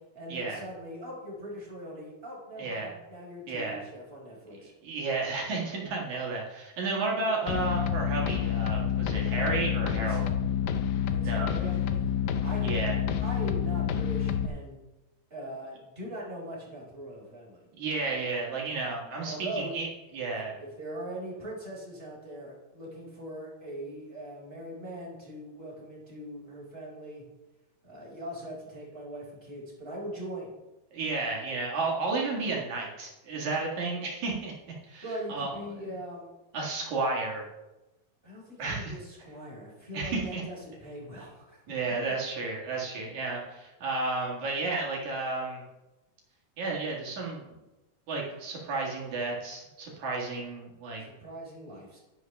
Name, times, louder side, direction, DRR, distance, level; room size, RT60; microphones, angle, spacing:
voice 1, 0.1-4.7 9.9-10.2 11.1-12.0 12.4-12.7 13.2-14.8 15.3-17.6 19.3-19.7 20.6-27.2 27.8-30.5 35.0-36.3 38.2-41.6 51.0-52.0, right 1 dB, 15° right, -6 dB, 4.3 m, -41 dB
voice 2, 2.6-2.9 3.5-3.8 4.8-10.3 11.2-11.5 12.6-13.0 17.8-19.9 20.1-20.6 30.9-34.5 34.8-35.0 35.3-35.5 36.5-37.5 38.6-38.9 39.9-40.4 41.7-45.6 46.6-47.6 48.1-51.0, right 3 dB, 55° right, -2 dB, 2.8 m, -32 dB
sound 1, 7.5-14.5, left 9 dB, 90° left, 1.7 m, -28 dB
11.5 x 10.5 x 3.4 m, 1.0 s
omnidirectional pair, 4.5 m